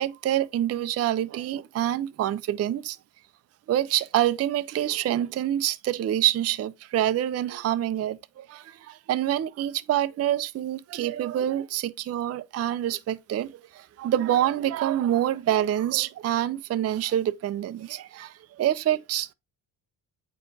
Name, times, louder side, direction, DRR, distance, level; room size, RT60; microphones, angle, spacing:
voice 1, 0.0-3.0 3.7-19.3, right 12 dB, 35° right, 0.4 m, -26 dB
8.2 x 4.4 x 2.7 m
cardioid pair, 85°, 47 cm